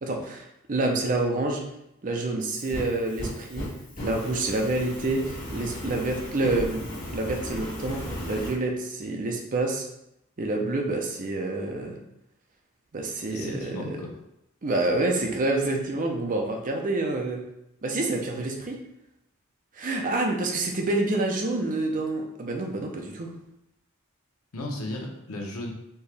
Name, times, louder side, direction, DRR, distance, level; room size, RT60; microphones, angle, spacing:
voice 1, 0.0-1.6 2.0-3.7 4.0-9.9 10.4-12.0 12.9-14.0 14.6-17.4 17.8-18.8 19.7-23.3, right 2 dB, 40° right, 2 dB, 0.6 m, -28 dB
Fire, 2.4-8.5, left 1 dB, 40° left, 1.5 m, -36 dB
voice 2, 13.3-14.1 24.5-25.7, left 1 dB, 80° left, 0 dB, 0.9 m, -35 dB
4.5 x 2.8 x 3.3 m, 0.83 s
head